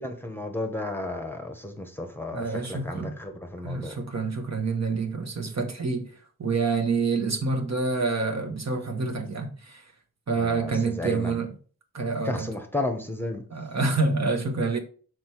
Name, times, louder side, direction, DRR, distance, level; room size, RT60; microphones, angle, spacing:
voice 1, 0.0-4.0 10.4-11.4 12.2-13.5, left 2 dB, 5° left, 1.0 m, -33 dB
voice 2, 2.3-3.2 3.6-6.1 6.4-9.8 10.3-11.5 11.9-12.5 13.5-14.8, right 4 dB, 45° right, 1.2 m, -27 dB
6.3 x 4.6 x 4.5 m
wide cardioid pair, 105°, 36 cm